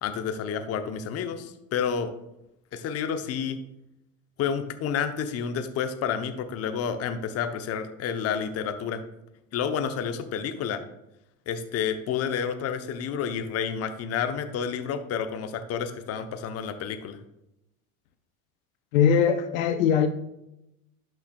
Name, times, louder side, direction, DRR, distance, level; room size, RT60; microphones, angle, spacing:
voice 1, 0.0-2.1 2.7-3.6 4.4-9.0 9.5-10.8 11.5-17.2, left 7 dB, 35° left, 0.9 m, -30 dB
voice 2, 18.9-20.1, left 7 dB, 70° left, 0.8 m, -21 dB
11.5 x 5.9 x 2.4 m
hypercardioid pair, 90°, 41 cm